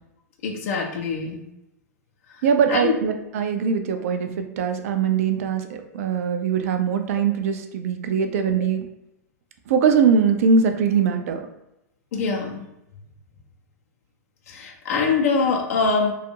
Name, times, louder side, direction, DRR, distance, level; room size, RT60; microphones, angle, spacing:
voice 1, 0.4-1.4 2.7-3.0 12.1-12.6 14.5-16.1, left 4 dB, 55° left, 2 dB, 0.5 m, -23 dB
voice 2, 2.4-8.9 9.7-11.4, right 6 dB, 60° right, 6 dB, 0.4 m, -21 dB
2.5 x 2.3 x 2.7 m, 0.88 s
figure-of-eight pair, 100°, 9 cm